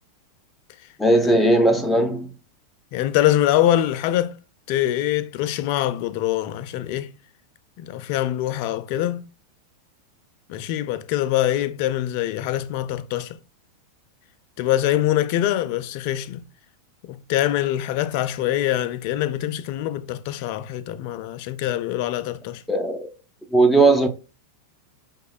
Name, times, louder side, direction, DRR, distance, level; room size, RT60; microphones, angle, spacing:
voice 1, 1.0-2.3 22.7-23.1 23.5-24.1, right 2 dB, 5° left, 0.6 m, -17 dB
voice 2, 2.9-4.3 4.7-7.1 7.8-9.2 10.5-13.4 14.6-16.4 17.0-22.6, left 13 dB, 45° left, 0.4 m, -24 dB
5.4 x 3.0 x 2.3 m
figure-of-eight pair, 90°, 0 cm